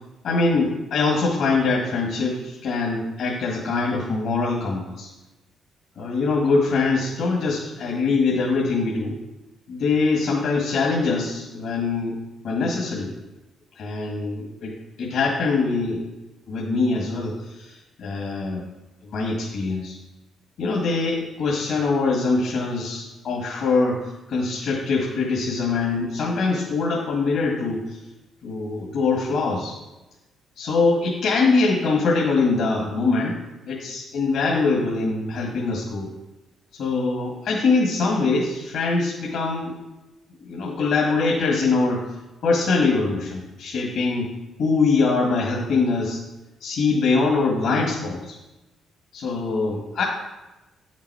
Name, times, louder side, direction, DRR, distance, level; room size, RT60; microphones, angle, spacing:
voice 1, 0.2-5.1 6.0-9.1 9.7-12.2 12.4-13.1 13.8-14.7 15.0-16.0 16.5-18.6 19.0-20.0 20.6-28.0 28.4-29.8 30.6-33.4 33.6-36.1 36.8-39.8 40.4-42.1 42.4-44.3 44.6-46.2 46.6-48.4 49.1-50.0, left 3 dB, 75° left, -3 dB, 1.9 m, -23 dB
10.0 x 7.3 x 4.8 m, 1.0 s
cardioid pair, 90°, 0 cm